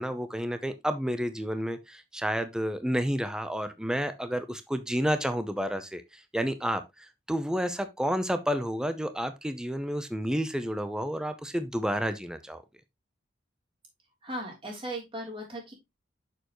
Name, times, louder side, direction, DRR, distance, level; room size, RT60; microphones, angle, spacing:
voice 1, 0.0-6.0 6.3-12.6, equal, 5° right, 0.6 m, -30 dB
voice 2, 14.2-15.7, right 1 dB, 30° right, 3.3 m, -37 dB
6.9 x 6.8 x 3.0 m
head